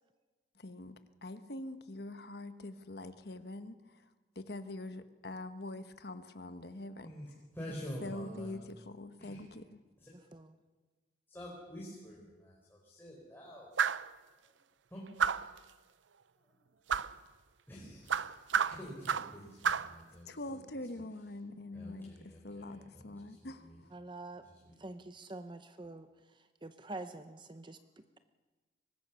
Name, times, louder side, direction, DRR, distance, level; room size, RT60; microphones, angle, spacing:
voice 1, 0.5-4.0 4.3-7.1 8.0-9.8 20.3-23.9, left 2 dB, 60° left, 10 dB, 1.2 m, -44 dB
voice 2, 7.5-8.5 9.2-9.4 10.0-10.1 11.3-13.7 14.9-15.0 16.4-16.5 17.7-18.3 18.7-20.6 21.7-23.8 24.4-24.7, equal, 10° left, -4 dB, 4.1 m, -48 dB
sound 1, 13.8-14.1 15.2-15.6 16.9-17.1 18.1-19.4 19.6-19.9, right 7 dB, 90° right, 0.6 m, -31 dB
voice 3, 23.9-24.4 24.8-28.2, right 2 dB, 25° right, 10 dB, 0.7 m, -47 dB
23.5 x 19.0 x 7.0 m, 1.3 s
head